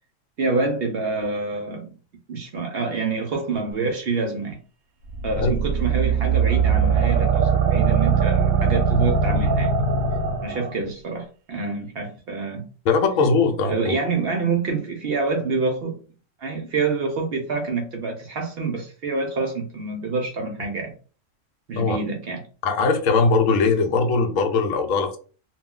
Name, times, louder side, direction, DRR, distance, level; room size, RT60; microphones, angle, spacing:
voice 1, 0.4-1.9 2.3-4.6 5.2-9.7 10.4-12.7 13.7-16.0 16.4-20.9 21.7-22.4, right 4 dB, 60° right, 0.7 m, -27 dB
sound 1, 5.1-10.7, right 6 dB, 85° right, 1.0 m, -21 dB
voice 2, 12.9-13.9 21.8-22.0 22.6-25.2, left 4 dB, 75° left, 0.9 m, -20 dB
2.3 x 2.1 x 3.6 m
omnidirectional pair, 1.4 m